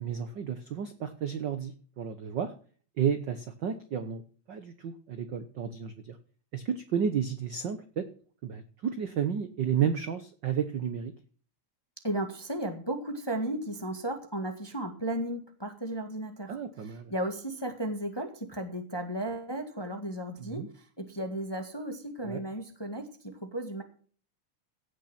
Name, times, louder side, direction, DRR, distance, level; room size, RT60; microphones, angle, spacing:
voice 1, 0.0-2.5 3.0-4.2 4.5-6.2 6.5-8.1 8.4-11.1 16.5-17.1 20.4-20.7 22.2-22.4, right 8 dB, 65° right, 10 dB, 1.1 m, -32 dB
voice 2, 12.0-16.6 16.8-23.8, right 1 dB, 10° left, 5 dB, 1.2 m, -35 dB
16.5 x 6.7 x 5.9 m, 0.43 s
omnidirectional pair, 3.4 m